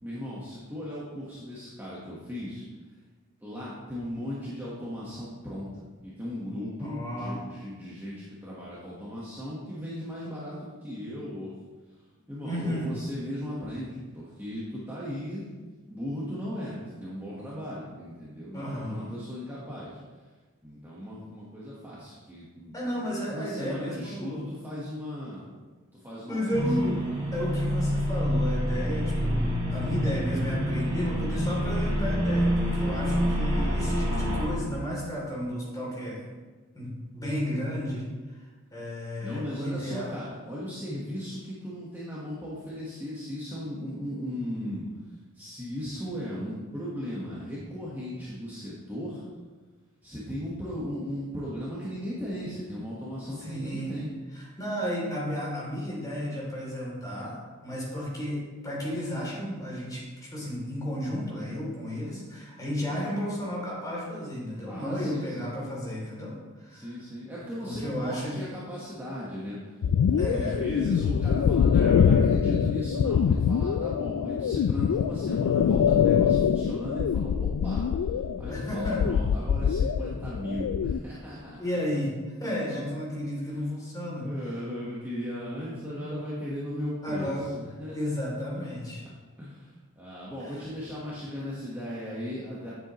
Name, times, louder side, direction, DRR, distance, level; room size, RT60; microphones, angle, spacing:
voice 1, 0.0-3.0 3.4-11.5 11.9-15.5 15.7-20.0 20.6-22.7 23.3-25.4 25.9-26.9 39.2-49.2 50.0-54.1 64.6-65.5 66.7-69.6 70.1-81.6 84.2-88.1 89.4-92.7, equal, 10° right, -8 dB, 1.3 m, -37 dB
voice 2, 6.8-7.4 12.4-12.9 18.5-19.1 22.7-24.5 26.3-27.0 27.3-36.2 36.7-40.1 53.4-53.9 54.4-66.9 67.6-68.5 70.2-70.6 78.5-79.1 81.6-82.1 82.4-84.3 87.0-87.5 87.8-89.0 90.4-90.5, equal, 15° left, -5 dB, 3.0 m, -33 dB
sound 1, 26.5-34.5, equal, 35° right, 2.6 m, -27 dB
sound 2, 69.8-81.0, left 7 dB, 85° left, 0.3 m, -24 dB
9.8 x 7.5 x 3.1 m, 1.3 s
head